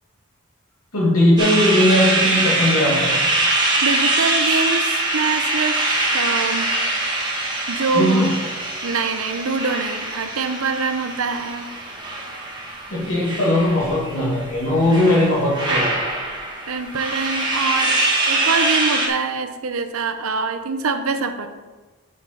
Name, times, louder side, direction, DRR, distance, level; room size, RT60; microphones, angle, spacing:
voice 1, 0.9-3.2 7.9-8.3 12.9-15.9, left 1 dB, 80° left, -7 dB, 1.9 m, -18 dB
sound 1, 1.4-19.1, right 2 dB, 20° right, 1.2 m, -23 dB
voice 2, 3.4-6.7 7.7-8.1 8.8-11.7 16.7-18.0 18.3-21.5, right 4 dB, 75° right, 8 dB, 0.7 m, -24 dB
7.2 x 6.0 x 4.1 m, 1.3 s
head